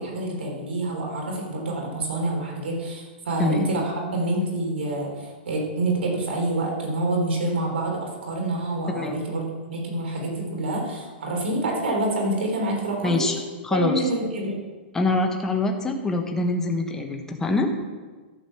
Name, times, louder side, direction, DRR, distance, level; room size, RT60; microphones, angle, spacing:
voice 1, 0.0-13.3 13.7-14.6, right 2 dB, 90° right, -1 dB, 3.8 m, -27 dB
voice 2, 13.0-13.4 13.6-14.0 14.9-17.7, left 2 dB, 10° left, 3 dB, 1.1 m, -24 dB
13.0 x 5.2 x 7.2 m, 1.4 s
hypercardioid pair, 150°, 6 cm